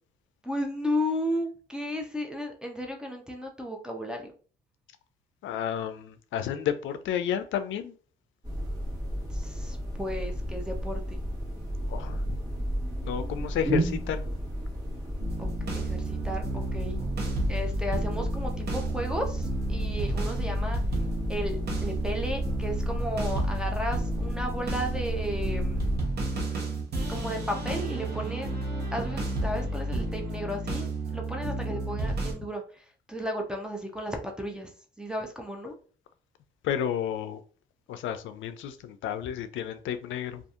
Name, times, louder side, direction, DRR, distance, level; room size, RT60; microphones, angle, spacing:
voice 1, 0.4-4.3 9.3-11.2 15.4-16.9 17.5-20.8 21.3-25.8 27.1-28.5 28.9-34.7 35.0-35.7, equal, 5° right, 0.6 m, -34 dB
voice 2, 5.4-7.9 11.8-12.3 13.0-14.2 36.6-37.4 37.9-40.4, left 9 dB, 75° left, 0.4 m, -31 dB
sound 1, 8.4-26.0, equal, 20° right, 1.2 m, -33 dB
sound 2, 15.2-32.3, right 2 dB, 55° right, 0.9 m, -32 dB
2.6 x 2.4 x 2.4 m
cardioid pair, 90°, 20 cm